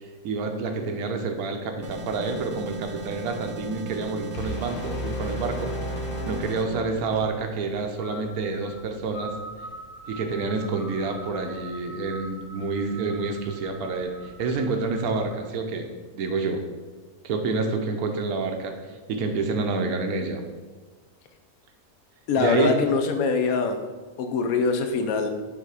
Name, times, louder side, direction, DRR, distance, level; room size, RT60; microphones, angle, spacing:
voice 1, 0.2-5.7 6.3-9.3 10.1-15.9 16.1-16.6 17.2-18.8 19.1-20.4 22.4-22.8, right 3 dB, 85° right, 4 dB, 1.2 m, -28 dB
sound 1, 1.8-6.7, right 2 dB, 45° right, 0.8 m, -38 dB
sound 2, 4.3-7.4, left 1 dB, 60° left, 0.7 m, -33 dB
sound 3, 6.9-15.4, right 1 dB, 20° left, 0.3 m, -43 dB
voice 2, 22.3-23.8 24.2-25.3, left 4 dB, 75° left, 6 dB, 1.1 m, -23 dB
5.8 x 3.6 x 4.7 m, 1.3 s
omnidirectional pair, 1.5 m